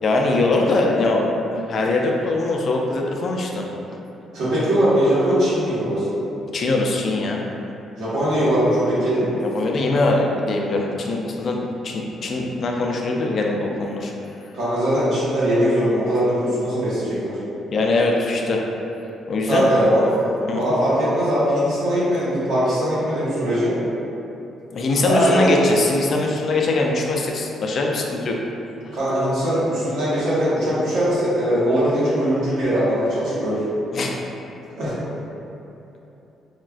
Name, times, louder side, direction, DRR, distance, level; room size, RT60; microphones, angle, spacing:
voice 1, 0.0-3.7 6.5-7.4 9.4-14.1 17.7-18.6 19.3-19.7 20.5-20.6 24.7-28.4 33.9-34.1, left 2 dB, 55° left, 0 dB, 0.4 m, -22 dB
voice 2, 4.3-6.1 8.0-9.3 14.5-17.3 19.5-20.0 20.5-23.7 25.0-25.5 28.9-33.7 34.8-34.9, equal, 80° right, -11 dB, 1.4 m, -20 dB
4.3 x 2.4 x 2.3 m, 2.9 s
cardioid pair, 90°, 0 cm